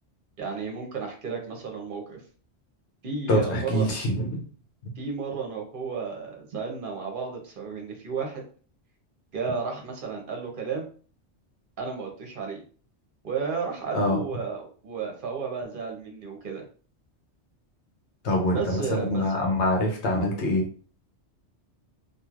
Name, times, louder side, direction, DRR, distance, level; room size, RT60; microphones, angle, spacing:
voice 1, 0.4-2.2 3.0-3.9 5.0-8.4 9.3-10.8 11.8-12.6 13.2-16.6 18.5-19.2, right 5 dB, 50° right, 2 dB, 0.9 m, -33 dB
voice 2, 3.3-4.4 13.9-14.2 18.2-20.6, left 1 dB, 75° left, 0 dB, 1.0 m, -25 dB
3.0 x 2.5 x 2.4 m, 0.41 s
omnidirectional pair, 1.2 m